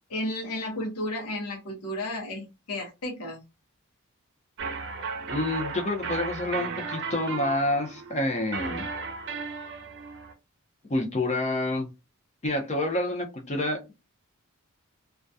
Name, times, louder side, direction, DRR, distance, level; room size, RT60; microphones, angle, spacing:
voice 1, 0.1-3.4, left 1 dB, 85° left, -1 dB, 0.7 m, -33 dB
sound 1, 4.6-10.3, right 5 dB, 55° right, 0.6 m, -35 dB
voice 2, 5.3-8.9 10.9-11.9 12.4-13.9, left 1 dB, 30° left, 2 dB, 0.7 m, -28 dB
2.3 x 2.2 x 2.6 m, 0.26 s
head